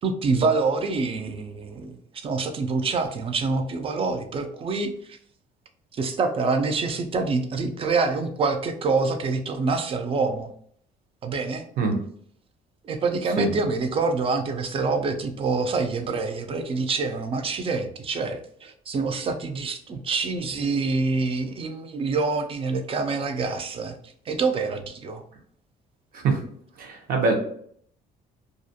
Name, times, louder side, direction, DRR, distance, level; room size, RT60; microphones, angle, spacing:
voice 1, 0.0-2.0 2.2-5.2 5.9-10.5 11.2-11.6 12.8-23.9 24.3-25.2, right 4 dB, 35° right, 7 dB, 0.4 m, -26 dB
voice 2, 26.8-27.4, right 3 dB, 60° right, 2 dB, 0.7 m, -23 dB
2.4 x 2.1 x 2.6 m, 0.63 s
cardioid pair, 110°, 17 cm